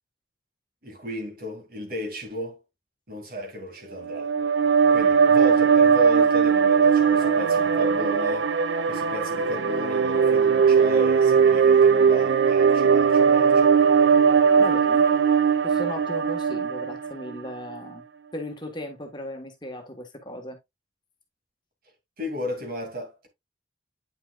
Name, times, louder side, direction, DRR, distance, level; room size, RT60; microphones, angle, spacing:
voice 1, 0.8-2.6 3.1-4.3 4.9-8.5 8.8-13.7 22.2-23.3, left 1 dB, 50° right, 2.5 m, -34 dB
sound 1, 4.0-17.4, right 6 dB, 80° right, 0.6 m, -19 dB
voice 2, 14.6-15.1 15.6-18.0 18.3-20.6, left 1 dB, 25° left, 1.4 m, -36 dB
9.1 x 5.7 x 2.4 m
head